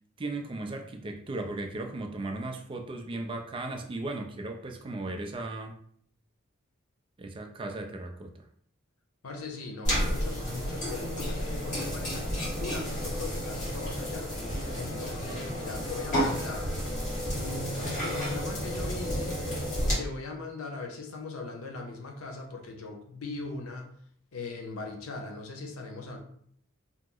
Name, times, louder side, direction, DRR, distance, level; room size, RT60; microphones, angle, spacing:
voice 1, 0.2-5.8 7.2-8.4, right 2 dB, 25° right, 4 dB, 0.3 m, -36 dB
voice 2, 9.2-14.3 14.7-16.7 17.3-19.4 19.8-23.9 24.3-26.2, left 3 dB, 85° left, 2 dB, 0.6 m, -39 dB
sound 1, 9.8-19.9, equal, 35° left, 1.2 m, -31 dB
2.9 x 2.0 x 3.6 m, 0.63 s
head